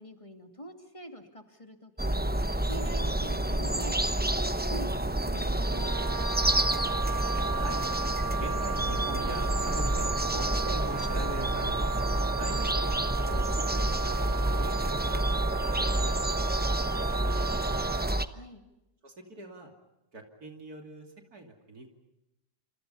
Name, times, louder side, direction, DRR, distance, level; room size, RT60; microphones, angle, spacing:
voice 1, 0.0-2.3 2.6-4.4 4.7-6.3 18.3-18.6, equal, 20° left, 5 dB, 2.5 m, -45 dB
sound 1, 2.0-18.2, right 1 dB, 15° right, 0.3 m, -28 dB
Wind instrument woodwind instrument, 5.6-18.1, right 6 dB, 90° right, 1.8 m, -36 dB
voice 2, 8.4-11.9 12.4-14.2 14.6-18.2 19.0-19.7 20.1-21.9, right 2 dB, 60° right, 3 dB, 3.3 m, -43 dB
29.0 x 27.0 x 5.6 m, 0.91 s
omnidirectional pair, 1.8 m